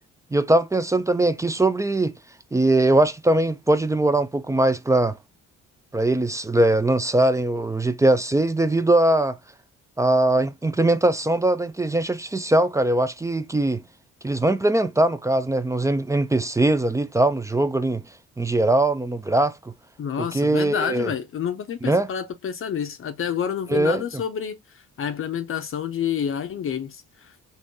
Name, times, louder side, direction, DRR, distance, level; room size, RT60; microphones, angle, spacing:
voice 1, 0.3-2.2 2.5-5.2 5.9-9.4 10.0-13.8 14.2-18.0 18.4-19.5 20.2-21.1 21.8-22.1 23.7-24.0, right 2 dB, 10° right, 0.3 m, -21 dB
voice 2, 20.0-27.3, left 8 dB, 45° left, 0.6 m, -29 dB
3.6 x 2.7 x 2.6 m
cardioid pair, 90°, 30 cm